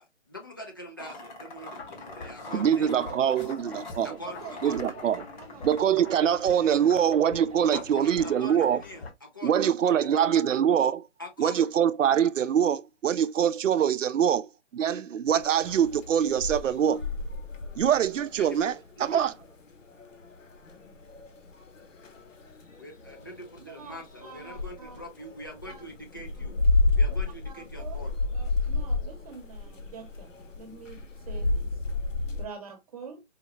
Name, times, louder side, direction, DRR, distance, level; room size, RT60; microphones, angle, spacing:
voice 1, 0.0-3.1 4.0-4.8 7.7-10.1 11.2-11.7 18.3-19.2 22.8-26.6 26.9-28.2, left 1 dB, 20° left, 0.4 m, -43 dB
sound 1, 1.0-6.2, left 2 dB, 35° left, 1.2 m, -44 dB
sound 2, 1.8-9.1, left 4 dB, 55° left, 0.8 m, -45 dB
voice 2, 2.5-4.2 4.6-5.2 5.6-8.8 9.4-11.0 11.4-17.1 17.8-18.7 19.0-19.3, right 9 dB, 80° right, 0.5 m, -24 dB
voice 3, 4.4-4.9 5.1-5.9 6.7-6.9 7.2-7.4 7.7-8.3 9.8-9.9 23.6-25.0 25.6-25.8 27.4-31.8 32.4-33.2, right 5 dB, 30° right, 0.8 m, -46 dB
sound 3, 15.4-32.5, left 2 dB, 85° left, 1.0 m, -31 dB
4.8 x 2.0 x 2.9 m
hypercardioid pair, 155°, 37 cm